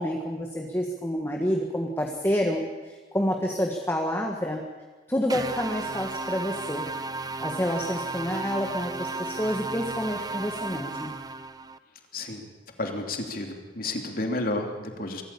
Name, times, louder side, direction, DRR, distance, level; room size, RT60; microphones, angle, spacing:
voice 1, 0.0-4.6 5.1-6.9 7.4-11.2, equal, 15° left, 1 dB, 1.6 m, -28 dB
sound 1, 5.3-11.8, right 3 dB, 20° right, 0.7 m, -34 dB
voice 2, 12.1-12.4 12.8-15.2, left 2 dB, 55° left, 3 dB, 3.0 m, -31 dB
24.0 x 14.5 x 8.6 m, 1.3 s
head